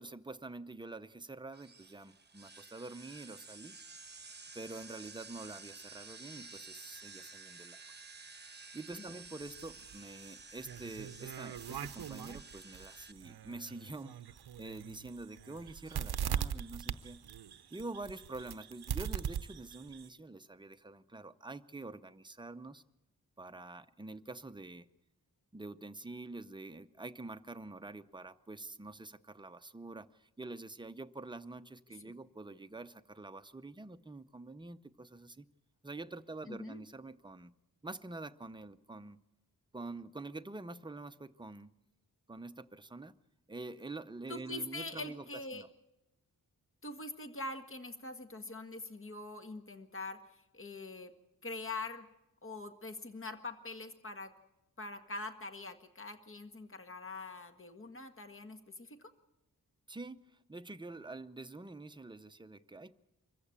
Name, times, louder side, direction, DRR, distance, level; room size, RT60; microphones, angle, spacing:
voice 1, 0.0-3.8 4.5-7.8 8.7-14.2 14.6-17.2 17.7-22.8 23.4-24.9 25.5-35.5 35.8-37.5 37.8-39.2 39.7-41.7 42.3-43.1 43.5-45.2 45.5-45.7 59.9-62.9, right 2 dB, 10° right, 0.7 m, -46 dB
sound 1, 1.5-13.1, right 4 dB, 30° right, 1.1 m, -52 dB
sound 2, 9.4-20.1, right 9 dB, 90° right, 0.7 m, -41 dB
voice 2, 36.5-36.8 44.3-45.6 46.8-51.1 51.4-52.1 52.4-54.3 54.8-59.1, left 2 dB, 35° left, 1.7 m, -44 dB
24.5 x 15.0 x 8.7 m
wide cardioid pair, 120°, 37 cm